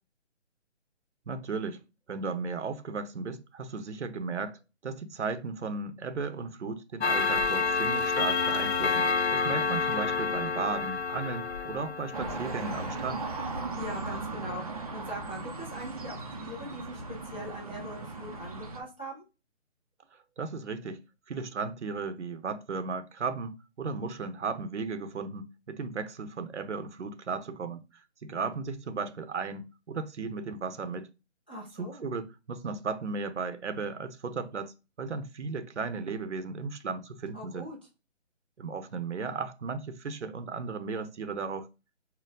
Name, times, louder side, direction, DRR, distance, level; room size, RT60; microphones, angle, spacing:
voice 1, 1.3-1.8 2.1-13.3 20.4-21.0 21.3-27.8 28.2-31.1 31.8-37.7 38.6-41.7, right 4 dB, 70° right, 0.9 m, -35 dB
Clock, 7.0-13.0, left 4 dB, 65° left, 1.0 m, -29 dB
voice 2, 8.8-9.1 13.8-19.2 31.5-32.1 37.3-37.8, equal, 10° left, 0.5 m, -41 dB
sound 1, 12.1-18.8, right 3 dB, 30° right, 0.6 m, -37 dB
4.5 x 2.3 x 3.7 m
hypercardioid pair, 160°, 36 cm